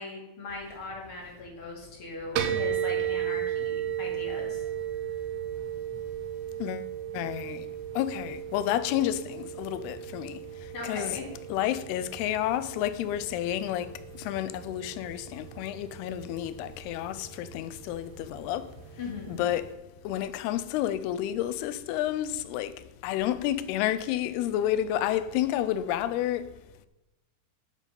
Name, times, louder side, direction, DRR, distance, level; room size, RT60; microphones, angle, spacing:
voice 1, 0.0-4.6 10.7-11.2 19.0-19.4, left 3 dB, 35° left, 3.2 m, -39 dB
sound 1, 2.4-19.7, right 10 dB, 80° right, 2.8 m, -36 dB
voice 2, 7.1-7.7 8.0-10.4 10.8-11.2 11.5-13.9 14.2-18.7 19.3-19.8 20.0-22.8 23.0-26.5, left 12 dB, 90° left, 2.6 m, -30 dB
10.5 x 7.4 x 5.3 m
omnidirectional pair, 4.5 m